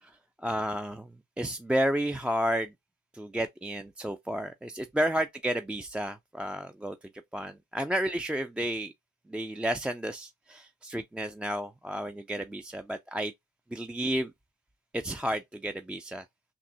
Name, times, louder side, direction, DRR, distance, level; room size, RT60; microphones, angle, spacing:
voice 1, 0.4-1.0 1.4-2.7 3.2-7.0 7.3-8.9 9.3-13.3 13.7-14.3 14.9-16.2, equal, 5° right, 0.3 m, -31 dB
5.9 x 2.0 x 2.7 m
cardioid pair, 90°, 20 cm